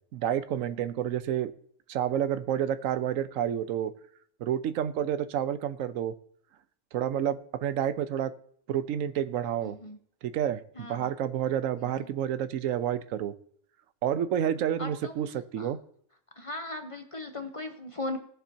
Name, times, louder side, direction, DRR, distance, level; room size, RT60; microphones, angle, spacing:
voice 1, 0.1-1.5 1.9-3.9 4.4-6.1 6.9-8.3 8.7-9.8 10.2-13.3 14.0-15.3 15.5-15.8, right 10 dB, 85° right, 14 dB, 1.0 m, -29 dB
voice 2, 9.6-10.0 10.8-11.1 11.8-12.1 14.6-15.1 15.6-15.7 16.4-18.2, left 2 dB, 30° left, 6 dB, 0.7 m, -38 dB
18.0 x 7.2 x 2.7 m, 0.64 s
omnidirectional pair, 1.4 m